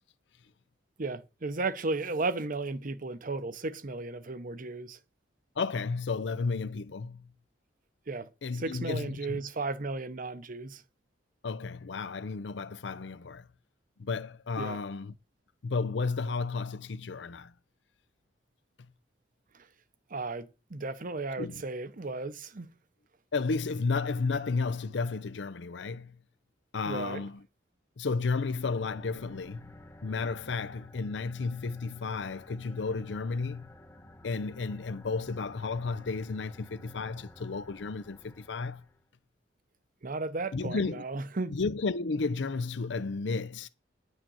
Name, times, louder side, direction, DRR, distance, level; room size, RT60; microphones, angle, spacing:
voice 1, 1.0-5.0 8.1-10.8 14.6-14.8 19.5-19.6 20.1-22.7 26.9-27.2 40.0-41.6, right 3 dB, 50° right, 0.9 m, -35 dB
voice 2, 5.6-7.3 8.4-9.4 11.4-13.5 14.0-15.1 15.6-17.5 21.4-21.6 23.3-26.2 26.7-27.4 28.0-29.7 30.0-33.7 34.2-38.8 40.5-41.0 41.5-43.7, left 4 dB, 70° left, 0.6 m, -33 dB
sound 1, 28.6-39.0, left 1 dB, 15° left, 1.1 m, -53 dB
10.5 x 6.4 x 6.3 m
head